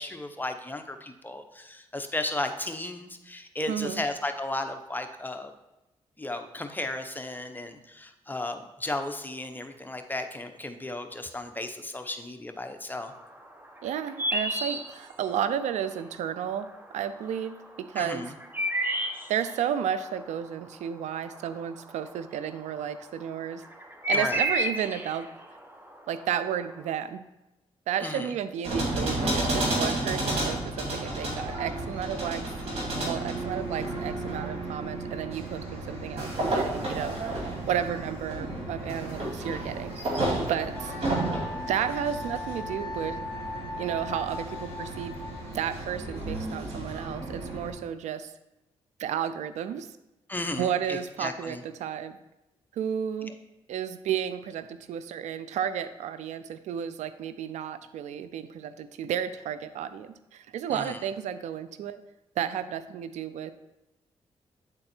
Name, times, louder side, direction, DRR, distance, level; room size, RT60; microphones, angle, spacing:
voice 1, 0.0-5.5 6.2-13.1 18.0-18.3 24.1-24.4 28.0-28.3 50.3-51.6 60.7-61.0, left 2 dB, 15° left, 6 dB, 0.9 m, -34 dB
voice 2, 3.7-4.0 13.8-18.3 19.3-23.6 24.1-25.3 26.1-27.2 27.9-32.5 33.0-37.4 37.7-39.9 40.5-40.9 41.7-43.2 43.8-45.2 45.5-48.3 49.0-49.9 50.6-52.2 52.7-53.4 53.7-62.0 62.4-63.5, right 9 dB, 80° right, 13 dB, 0.4 m, -32 dB
sound 1, 13.1-15.7 16.1-16.8 17.2-22.3 22.6-26.9, right 1 dB, 15° right, 1.0 m, -31 dB
sound 2, 28.6-47.7, right 2 dB, 60° right, 2.4 m, -32 dB
Wind instrument woodwind instrument, 40.6-45.5, left 3 dB, 40° left, 1.7 m, -39 dB
8.8 x 4.0 x 4.4 m, 0.97 s
supercardioid pair, 55°, 12 cm